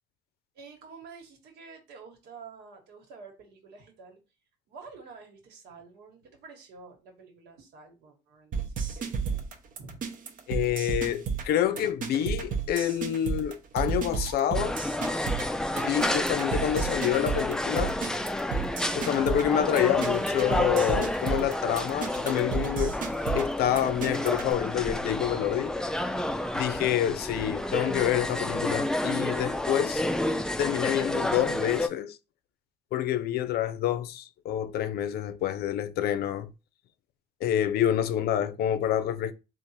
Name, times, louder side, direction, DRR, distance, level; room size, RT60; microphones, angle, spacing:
voice 1, 0.5-4.2 4.7-9.5 9.8-10.1, right 4 dB, 80° right, 1.5 m, -49 dB
sound 1, 8.5-24.5, right 6 dB, 50° right, 0.8 m, -33 dB
voice 2, 10.5-14.8 15.8-17.9 18.9-22.9 23.3-25.7 26.5-30.0 30.6-32.2 32.9-36.5 37.4-39.3, left 11 dB, 70° left, 0.5 m, -27 dB
sound 2, 14.5-31.9, left 1 dB, 5° left, 0.3 m, -30 dB
3.6 x 2.5 x 4.3 m
cardioid pair, 110°, 17 cm